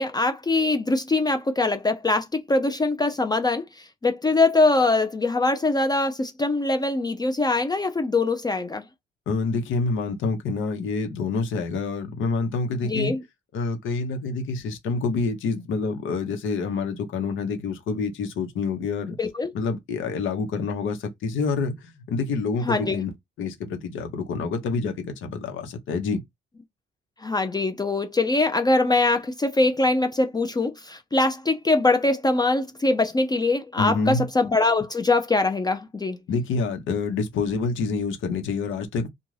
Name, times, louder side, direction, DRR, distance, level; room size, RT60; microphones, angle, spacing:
voice 1, 0.0-8.8 12.8-13.2 19.2-19.5 22.6-23.0 27.2-36.2, left 2 dB, 20° left, 0.5 m, -23 dB
voice 2, 9.3-13.1 13.5-19.2 19.5-23.1 23.4-26.2 33.8-34.3 36.3-39.1, left 4 dB, 75° left, 0.9 m, -27 dB
2.4 x 2.3 x 3.2 m
cardioid pair, 90°, 20 cm